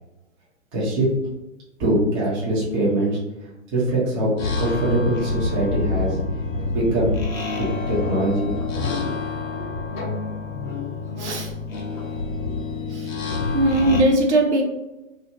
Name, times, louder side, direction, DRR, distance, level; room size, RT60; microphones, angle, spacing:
voice 1, 0.7-1.1 1.8-3.2 3.7-4.3 4.6-6.2 6.7-7.2 7.5-8.6 9.5-9.6, right 1 dB, 15° right, -7 dB, 0.6 m, -22 dB
sound 1, 4.4-14.0, left 3 dB, 75° left, 0.8 m, -27 dB
voice 2, 11.2-11.5 12.9-13.1 13.5-14.6, right 1 dB, 55° right, 1 dB, 0.8 m, -19 dB
2.8 x 2.4 x 3.1 m, 1.0 s
figure-of-eight pair, 125°, 41 cm